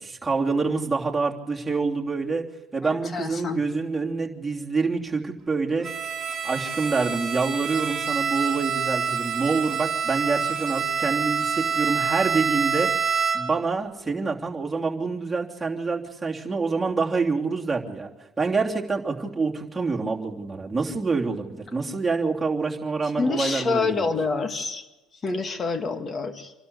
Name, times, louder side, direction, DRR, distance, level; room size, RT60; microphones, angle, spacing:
voice 1, 0.0-2.5 2.7-5.9 6.4-12.9 13.3-18.1 18.4-24.1, right 4 dB, 15° right, -1 dB, 3.1 m, -26 dB
voice 2, 2.8-3.6 23.2-24.9 25.2-26.5, left 4 dB, 35° left, 8 dB, 2.2 m, -27 dB
Bowed string instrument, 5.8-13.7, right 6 dB, 30° right, 2.2 m, -27 dB
27.0 x 12.5 x 8.2 m, 1.1 s
supercardioid pair, 80°, 0 cm